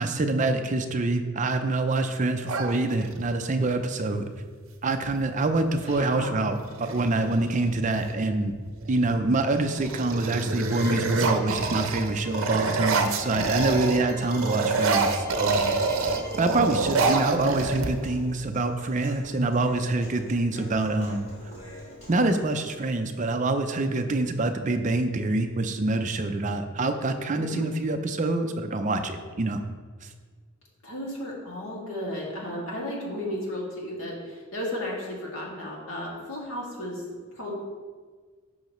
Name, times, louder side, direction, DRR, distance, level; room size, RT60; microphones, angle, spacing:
voice 1, 0.0-4.2 4.8-8.5 8.9-15.8 16.4-21.3 22.1-29.6 30.0-30.1, right 2 dB, 35° right, 7 dB, 0.5 m, -26 dB
sound 1, 2.5-3.4 5.1-5.2 5.5-6.0 6.6-8.1 8.7-9.1 9.5-14.0 14.3-18.2, right 3 dB, 70° right, 0.7 m, -27 dB
voice 2, 5.9-6.5 27.3-27.7 30.8-37.5, left 1 dB, 70° left, -4 dB, 2.2 m, -34 dB
Bowed string instrument, 10.7-16.5, left 1 dB, 10° left, 0.6 m, -45 dB
Human voice, 14.5-22.5, equal, 30° left, 2.3 m, -45 dB
11.5 x 5.6 x 3.1 m, 1.5 s
head